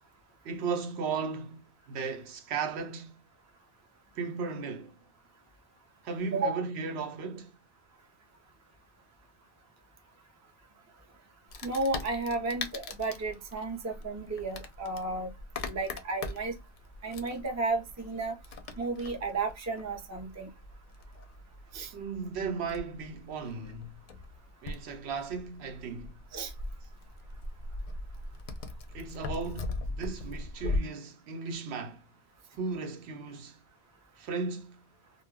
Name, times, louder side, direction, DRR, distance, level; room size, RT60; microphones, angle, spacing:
voice 1, 0.4-3.2 4.2-4.9 6.0-7.5 21.9-24.0 24.6-26.1 28.9-32.0 32.6-33.6 34.2-34.8, right 5 dB, 85° right, 0.9 m, -36 dB
Wood, 11.5-30.8, left 2 dB, 55° left, 0.6 m, -41 dB
voice 2, 11.6-15.3 15.7-16.5 17.0-18.4 18.8-20.5 21.7-21.9 26.3-26.5, right 3 dB, 25° right, 0.4 m, -33 dB
2.2 x 2.1 x 3.3 m
omnidirectional pair, 1.1 m